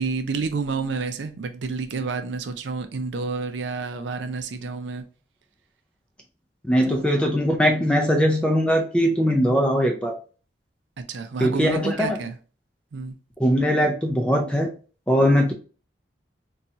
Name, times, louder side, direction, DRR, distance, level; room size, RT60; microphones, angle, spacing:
voice 1, 0.0-5.0 6.9-7.0 11.0-12.4 12.9-13.2, right 4 dB, 75° right, 0.5 m, -29 dB
voice 2, 6.6-10.2 11.4-12.2 13.4-14.7 15.1-15.5, equal, 5° left, 0.4 m, -20 dB
4.1 x 2.3 x 2.6 m
head